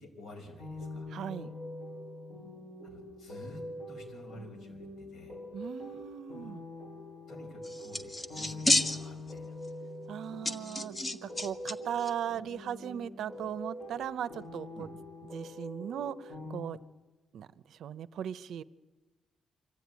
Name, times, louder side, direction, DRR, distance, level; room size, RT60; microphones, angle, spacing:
voice 1, 0.0-1.1 2.8-5.4 7.3-9.6 14.7-14.9, left 1 dB, 55° left, 3 dB, 5.6 m, -50 dB
sound 1, 0.6-16.6, left 1 dB, 30° left, 6.7 m, -44 dB
voice 2, 1.1-1.5 5.5-6.7 10.1-14.9 15.2-16.8 17.3-18.6, right 9 dB, 65° right, 15 dB, 0.7 m, -38 dB
sound 2, 7.6-9.3 9.6-9.7 10.5-11.7 12.0-12.1, left 1 dB, 15° left, 1.0 m, -30 dB
24.5 x 15.5 x 9.6 m, 1.2 s
cardioid pair, 160°, 0 cm